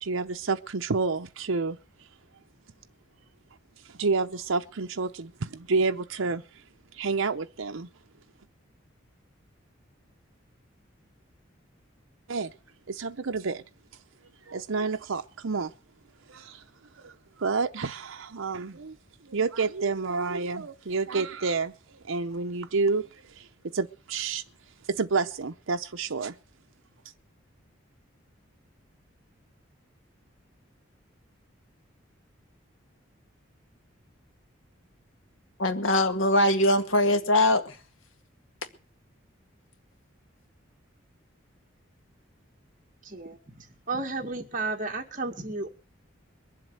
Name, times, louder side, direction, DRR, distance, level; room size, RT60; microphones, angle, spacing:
voice 1, 0.0-1.8 3.8-6.4 6.9-7.9 12.3-12.5 12.9-13.6 14.5-15.7 16.3-16.6 17.0-17.1 17.4-19.0 19.2-24.4 24.9-26.3, right 4 dB, 80° right, 0.7 m, -29 dB
voice 2, 35.6-37.8, left 1 dB, 80° left, 2.0 m, -22 dB
voice 3, 43.0-45.7, right 3 dB, 40° right, 2.1 m, -33 dB
22.0 x 7.7 x 7.9 m
head